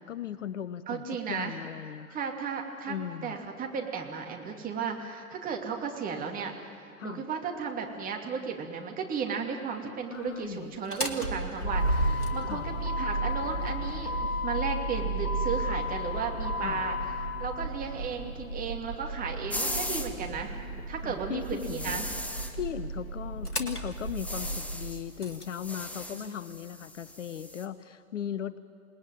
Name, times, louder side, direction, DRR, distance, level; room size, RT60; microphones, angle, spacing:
voice 1, 0.0-2.2 2.9-3.4 7.0-7.2 10.1-10.7 12.4-12.7 16.6-16.8 21.0-22.0 22.5-28.6, left 9 dB, 55° left, 16 dB, 0.9 m, -37 dB
voice 2, 0.9-1.6 2.1-2.9 3.2-6.5 7.0-20.5 20.9-22.1 26.1-26.4, right 6 dB, 20° right, 2 dB, 2.8 m, -35 dB
Motor vehicle (road), 10.7-25.4, equal, 85° left, 2.0 m, -33 dB
sound 1, 19.5-20.1 21.6-22.5 24.0-25.0 25.3-27.6, left 1 dB, 5° left, 1.1 m, -37 dB
28.5 x 19.0 x 9.3 m, 2.4 s
figure-of-eight pair, 110°, 44 cm